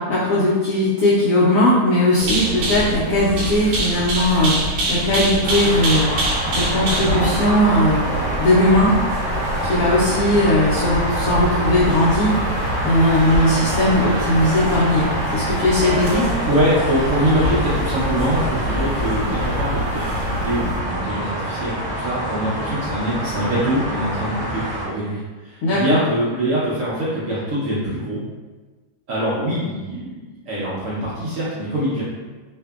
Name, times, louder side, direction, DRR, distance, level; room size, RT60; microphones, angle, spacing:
voice 1, 0.0-4.6 4.9-8.9 9.6-12.3 12.8-16.3 25.6-26.0, left 1 dB, 75° left, -9 dB, 0.8 m, -18 dB
sound 1, 2.2-20.8, right 1 dB, 85° right, 1.3 m, -26 dB
sound 2, 5.4-24.9, equal, 15° left, 0.6 m, -26 dB
voice 2, 16.5-28.2 29.1-32.0, equal, 65° right, -8 dB, 0.8 m, -23 dB
2.7 x 2.6 x 2.3 m, 1.3 s
omnidirectional pair, 1.9 m